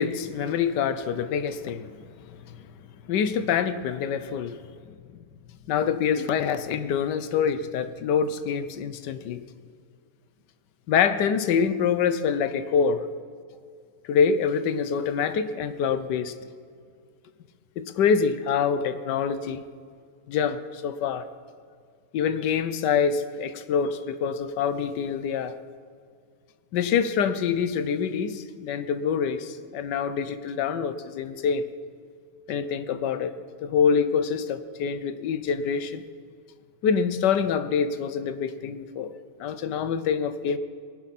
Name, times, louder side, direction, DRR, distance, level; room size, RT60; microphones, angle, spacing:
voice 1, 0.0-1.9 2.4-2.6 3.1-4.6 5.7-9.4 10.9-13.1 14.1-16.3 17.8-19.6 20.3-21.3 22.1-25.5 26.7-31.6 32.5-33.3 33.6-36.0 36.8-39.1 39.4-40.6, left 6 dB, 80° left, 12 dB, 1.3 m, -25 dB
18.5 x 11.5 x 4.1 m, 2.2 s
omnidirectional pair, 1.9 m